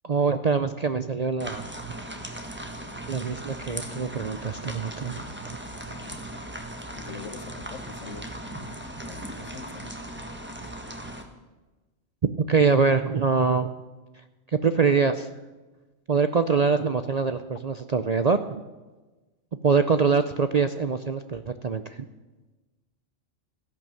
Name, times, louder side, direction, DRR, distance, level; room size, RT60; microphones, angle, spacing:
voice 1, 0.0-1.7 3.1-5.2 12.5-13.7 14.6-15.3 16.1-18.6 19.6-21.8, right 5 dB, 45° right, 0.5 m, -24 dB
sound 1, 1.4-11.2, right 1 dB, 10° right, 1.4 m, -38 dB
voice 2, 5.9-6.2 6.9-8.3 8.7-9.9, left 6 dB, 70° left, 1.3 m, -43 dB
14.5 x 11.0 x 7.5 m
omnidirectional pair, 1.3 m